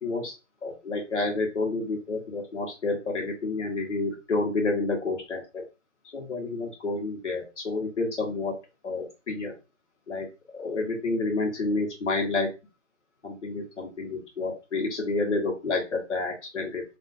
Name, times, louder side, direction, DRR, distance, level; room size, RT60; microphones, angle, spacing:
voice 1, 0.0-0.3 0.6-5.7 6.1-8.5 8.8-9.5 10.1-10.3 10.5-12.5 13.2-16.8, left 3 dB, 65° left, 0 dB, 1.3 m, -29 dB
2.8 x 2.6 x 2.5 m, 0.28 s
hypercardioid pair, 170°, 39 cm